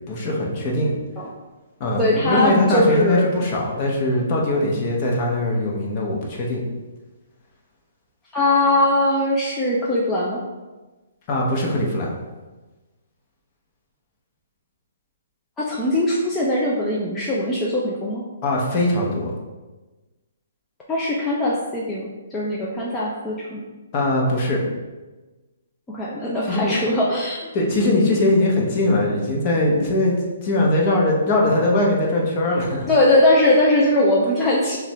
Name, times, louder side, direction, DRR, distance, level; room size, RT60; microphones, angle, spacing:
voice 1, 0.1-0.9 1.8-6.6 11.3-12.1 18.4-19.3 23.9-24.6 26.5-26.8 27.5-30.1 30.4-32.9, left 1 dB, 30° left, -1 dB, 1.0 m, -21 dB
voice 2, 2.0-3.3 8.3-10.4 15.6-18.2 20.9-23.6 25.9-27.4 32.9-34.8, left 1 dB, 10° left, -6 dB, 0.5 m, -20 dB
6.4 x 2.5 x 3.2 m, 1.2 s
hypercardioid pair, 155°, 0 cm